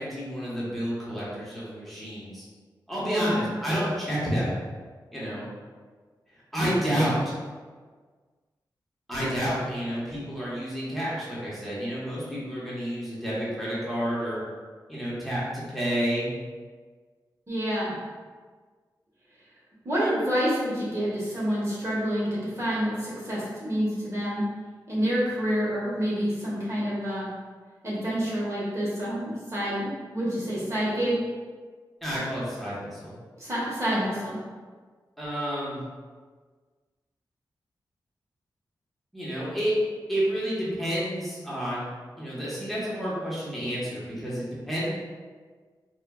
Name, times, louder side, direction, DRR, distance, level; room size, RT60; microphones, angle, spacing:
voice 1, 0.0-2.4 2.9-4.6 5.1-5.4 6.5-7.4 9.1-14.4 14.9-16.3 32.0-33.1 35.2-35.8 39.1-39.7 40.1-44.9, equal, ahead, -9 dB, 1.2 m, -30 dB
voice 2, 17.5-17.9 19.8-24.4 24.9-27.3 27.8-31.2 33.4-34.4, equal, 40° right, -8 dB, 1.2 m, -28 dB
4.4 x 2.4 x 2.3 m, 1.5 s
cardioid pair, 65°, 8 cm